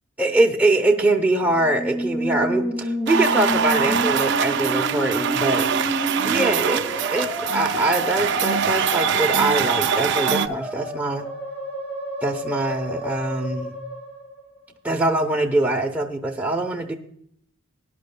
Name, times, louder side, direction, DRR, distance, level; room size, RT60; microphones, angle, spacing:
voice 1, 0.2-5.7 6.2-11.2 12.2-13.8 14.8-16.9, right 2 dB, 5° right, 0 dB, 0.8 m, -23 dB
Musical instrument, 1.5-14.9, equal, 10° left, 3.4 m, -29 dB
sound 1, 3.1-10.5, right 7 dB, 55° right, 0.5 m, -23 dB
19.0 x 11.0 x 2.2 m, 0.66 s
head